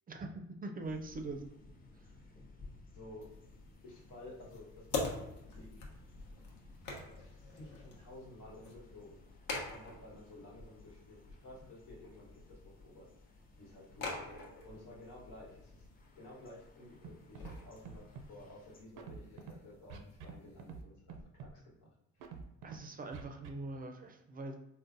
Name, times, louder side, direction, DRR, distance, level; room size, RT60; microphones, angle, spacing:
voice 1, 0.1-1.4 1.9-2.1 22.6-24.5, right 2 dB, 30° right, 5 dB, 0.4 m, -43 dB
sound 1, 0.8-18.8, left 2 dB, 30° left, 0.6 m, -58 dB
voice 2, 2.9-3.3 3.8-5.7 7.0-15.9 16.1-21.9 22.1-22.3, left 1 dB, 90° left, -5 dB, 1.2 m, -54 dB
sound 2, 3.2-20.8, left 3 dB, 75° left, 0.8 m, -47 dB
Scratching (performance technique), 17.0-17.1 17.4-17.6 17.8-18.3 19.0-19.5 19.9-20.3 20.6-20.8 21.1-21.5 22.2-22.8 23.1-23.5, right 6 dB, 85° right, 0.5 m, -46 dB
3.9 x 2.1 x 2.5 m, 0.88 s
cardioid pair, 90°, 30 cm